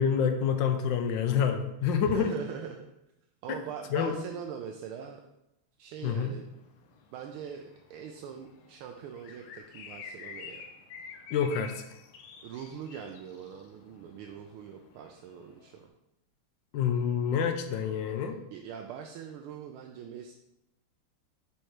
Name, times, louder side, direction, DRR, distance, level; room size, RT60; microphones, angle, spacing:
voice 1, 0.0-2.3 3.9-4.1 6.0-6.3 11.3-11.8 16.7-18.4, left 7 dB, 70° left, 6 dB, 1.2 m, -27 dB
voice 2, 2.0-2.8 3.4-5.2 5.8-6.4 7.1-10.6 12.4-15.9 18.5-20.3, right 8 dB, 85° right, 3 dB, 1.5 m, -42 dB
sound 1, 6.0-15.9, left 6 dB, 90° left, 1.6 m, -50 dB
5.4 x 4.4 x 4.8 m, 0.88 s
omnidirectional pair, 2.3 m